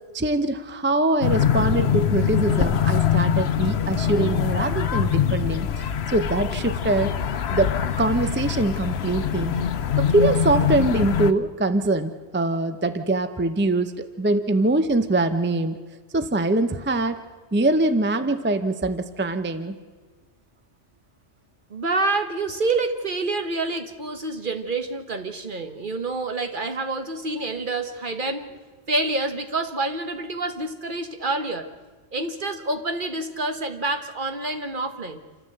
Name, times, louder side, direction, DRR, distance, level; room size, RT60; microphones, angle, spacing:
voice 1, 0.1-5.7 6.1-7.1 7.5-9.5 10.0-15.8 16.1-17.2 17.5-19.7, right 2 dB, 10° right, 10 dB, 0.7 m, -23 dB
sound 1, 1.2-11.3, left 8 dB, 75° left, 1.0 m, -23 dB
voice 2, 21.7-28.6 28.9-31.7 32.1-35.2, right 2 dB, 50° right, 7 dB, 1.4 m, -27 dB
28.0 x 13.5 x 7.9 m, 1.4 s
omnidirectional pair, 1.1 m